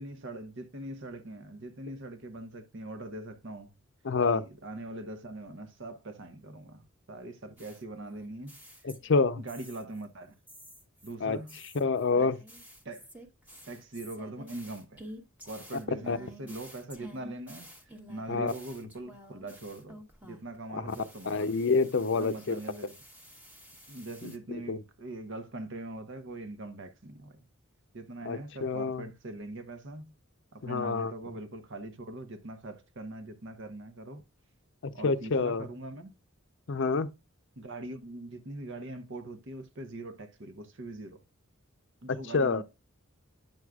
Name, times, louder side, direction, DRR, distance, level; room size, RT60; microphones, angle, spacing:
voice 1, 0.0-3.7 4.3-8.9 9.4-10.4 11.0-11.6 12.2-12.3 12.8-13.1 13.7-15.1 15.4-21.5 22.2-23.0 23.9-27.5 27.9-30.1 30.5-34.2 34.9-36.1 37.6-41.2 42.0-42.6, right 2 dB, 60° right, 0.9 m, -42 dB
voice 2, 4.0-4.4 8.8-9.4 11.2-11.4 11.8-12.4 16.1-16.2 18.3-18.5 20.7-20.9 21.3-22.6 24.7-24.8 28.3-29.0 30.6-31.1 35.0-35.6 36.7-37.1 42.1-42.6, left 4 dB, 60° left, 0.6 m, -27 dB
sound 1, 7.6-9.2 9.5-10.0 10.5-20.6 20.9-24.4, equal, 10° right, 1.0 m, -51 dB
9.1 x 6.3 x 2.3 m
head